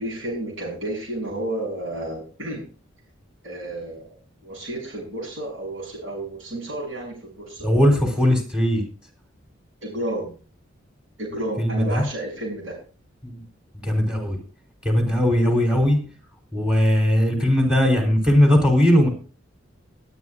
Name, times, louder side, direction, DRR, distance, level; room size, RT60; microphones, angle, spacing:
voice 1, 0.0-2.6 3.4-4.2 4.4-7.7 9.8-10.4 11.2-12.8, right 1 dB, 85° right, -3 dB, 7.2 m, -31 dB
voice 2, 7.6-8.8 11.6-12.1 13.2-13.4 13.8-14.4 14.8-16.0 16.5-19.1, left 1 dB, 5° right, 1 dB, 3.4 m, -19 dB
22.0 x 9.0 x 2.5 m, 0.38 s
head